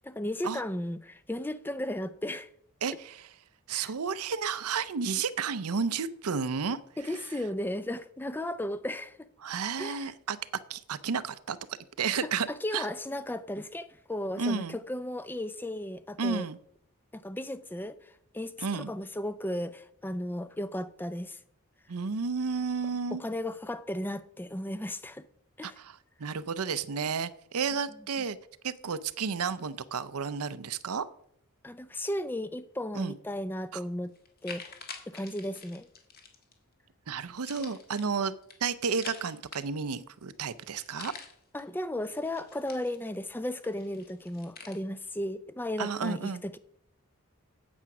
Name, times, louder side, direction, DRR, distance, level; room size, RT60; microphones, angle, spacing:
voice 1, 0.0-2.5 3.7-3.9 7.0-9.3 9.8-10.1 12.2-16.5 17.1-21.4 23.1-25.3 25.6-25.8 31.6-34.1 34.4-34.7 35.1-35.9 41.5-46.6, left 1 dB, 10° left, 0.4 m, -35 dB
voice 2, 2.8-3.3 3.7-6.8 9.4-10.4 10.7-12.5 12.7-12.9 14.4-14.8 16.2-16.6 18.6-18.9 21.9-23.2 25.6-28.4 28.6-31.1 32.9-33.1 33.7-33.8 37.1-38.3 38.6-41.1 45.8-46.4, right 5 dB, 90° right, 0.6 m, -32 dB
sound 1, 33.6-33.7 34.1-36.5 37.4-40.0 40.3-40.4 40.6-41.6 42.1-43.3 43.6-44.8, left 5 dB, 45° left, 1.6 m, -47 dB
8.7 x 8.0 x 5.9 m
head